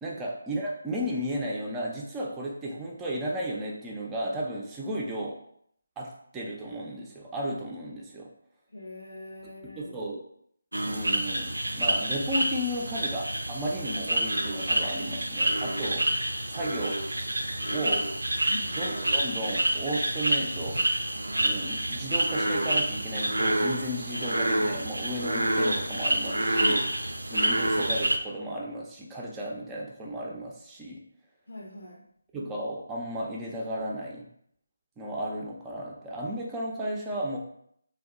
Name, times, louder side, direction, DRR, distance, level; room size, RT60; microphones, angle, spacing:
voice 1, 0.0-5.4 6.0-8.3 9.6-10.2 10.8-16.1 16.5-17.0 17.7-18.1 18.7-20.9 21.4-31.0 32.3-34.3 35.0-37.4, equal, 10° right, -3 dB, 0.4 m, -34 dB
voice 2, 8.7-10.0 18.4-18.8 31.5-32.0, left 1 dB, 80° left, 1 dB, 0.8 m, -43 dB
sound 1, 10.7-28.2, right 1 dB, 90° right, 0.4 m, -28 dB
2.8 x 2.3 x 3.5 m, 0.69 s
figure-of-eight pair, 155°, 0 cm